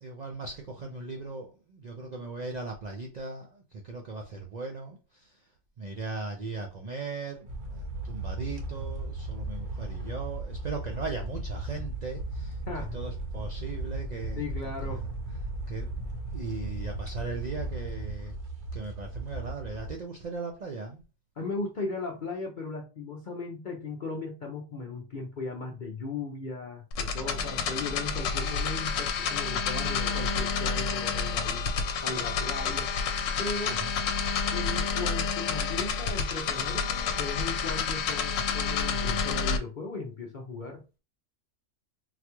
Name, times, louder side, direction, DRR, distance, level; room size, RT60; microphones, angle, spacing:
voice 1, 0.0-5.4 5.8-12.6 12.9-14.4 14.8-15.1 15.7-16.1 16.3-18.4 18.7-21.0 27.1-28.6 33.7-33.9, right 3 dB, 75° right, 0.3 m, -38 dB
sound 1, 7.4-19.9, right 2 dB, 45° right, 0.8 m, -36 dB
voice 2, 14.4-15.0 21.4-31.7 32.0-32.9 33.4-33.8 34.5-40.8, left 3 dB, 50° left, 0.6 m, -37 dB
sound 2, 26.9-39.6, left 5 dB, 75° left, 1.0 m, -29 dB
4.0 x 2.3 x 2.9 m
omnidirectional pair, 1.4 m